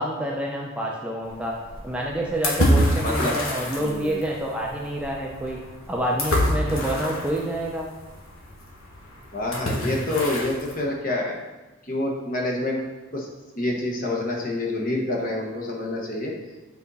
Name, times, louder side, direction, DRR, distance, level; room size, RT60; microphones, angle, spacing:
voice 1, 0.0-1.5 1.8-5.6 5.9-7.9, right 1 dB, 5° right, -2 dB, 0.5 m, -28 dB
sound 1, 1.2-10.7, equal, 80° left, 1.5 m, -28 dB
voice 2, 3.0-3.4 3.8-4.2 9.3-11.4 11.8-12.8 13.1-13.3 13.6-16.3, left 2 dB, 40° left, -1 dB, 1.2 m, -27 dB
8.0 x 4.1 x 4.1 m, 1.1 s
head